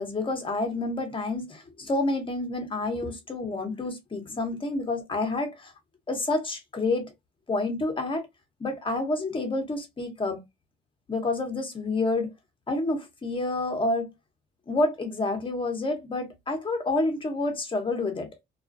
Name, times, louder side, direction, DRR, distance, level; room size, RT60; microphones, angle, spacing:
voice 1, 0.0-5.7 6.1-7.1 7.5-8.3 8.6-10.4 11.1-12.3 12.7-14.1 14.7-18.3, left 2 dB, 25° left, 0.9 m, -28 dB
2.4 x 2.2 x 2.5 m
cardioid pair, 90°, 20 cm